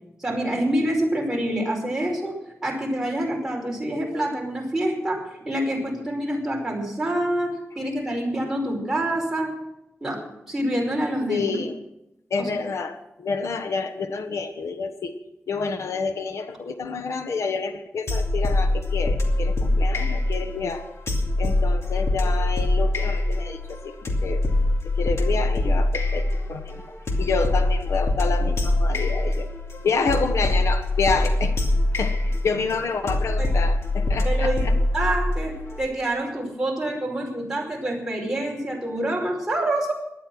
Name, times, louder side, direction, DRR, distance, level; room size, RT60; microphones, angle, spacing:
voice 1, 0.2-2.4 2.6-9.5 10.0-11.6 12.4-12.5 33.4-33.5 34.2-34.6 34.9-39.9, right 1 dB, 10° right, -2 dB, 5.1 m, -26 dB
voice 2, 11.3-11.8 12.3-15.2 15.5-20.9 21.4-24.5 24.8-29.5 29.8-31.6 32.0-34.7, left 4 dB, 90° left, 8 dB, 1.2 m, -28 dB
sound 1, 18.1-35.8, left 2 dB, 65° left, 2.5 m, -23 dB
17.5 x 11.5 x 6.2 m, 0.87 s
wide cardioid pair, 145°, 5 cm